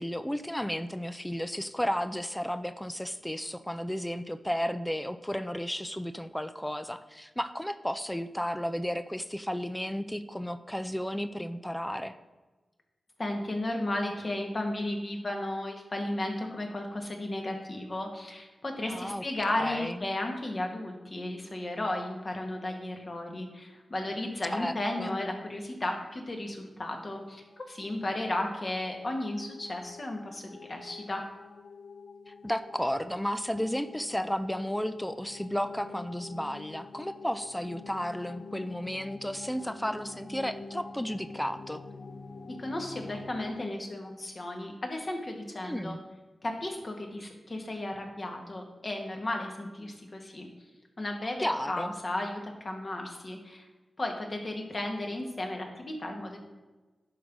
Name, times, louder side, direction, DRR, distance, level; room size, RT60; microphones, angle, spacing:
voice 1, 0.0-12.2 18.9-19.2 19.6-20.0 24.5-25.2 32.3-41.8 45.6-46.0 51.4-51.9, equal, 5° left, 11 dB, 0.4 m, -33 dB
voice 2, 13.2-31.2 42.4-46.0 46.4-50.5 51.0-53.7 54.0-56.4, left 1 dB, 40° left, 2 dB, 1.8 m, -34 dB
sound 1, 27.3-43.6, left 4 dB, 55° left, 0.5 m, -47 dB
11.0 x 4.0 x 6.1 m, 1.2 s
cardioid pair, 75°, 0 cm